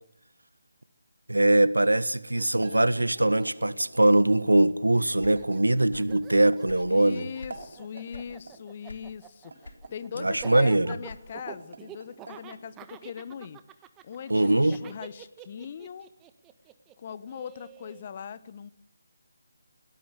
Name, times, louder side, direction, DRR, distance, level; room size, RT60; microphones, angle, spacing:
voice 1, 1.3-7.2 10.2-11.0 14.3-14.8, right 1 dB, 80° right, 17 dB, 1.5 m, -22 dB
Laughter, 2.1-2.2 2.4-4.7 5.0-18.0, right 11 dB, 15° right, 1.4 m, -47 dB
sound 1, 2.6-4.6 5.3-6.7 7.4-8.6 9.4-10.8 11.4-12.7, right 3 dB, 60° right, 5.5 m, -48 dB
sound 2, 5.2-6.2 6.5-7.6 8.1-8.4 8.8-9.3 9.6-11.5, left 2 dB, 70° left, 3.8 m, -46 dB
voice 2, 6.9-13.6 14.0-16.1 17.0-18.7, left 7 dB, 35° left, 16 dB, 1.3 m, -40 dB
21.5 x 18.5 x 8.2 m, 0.68 s
figure-of-eight pair, 150°, 0 cm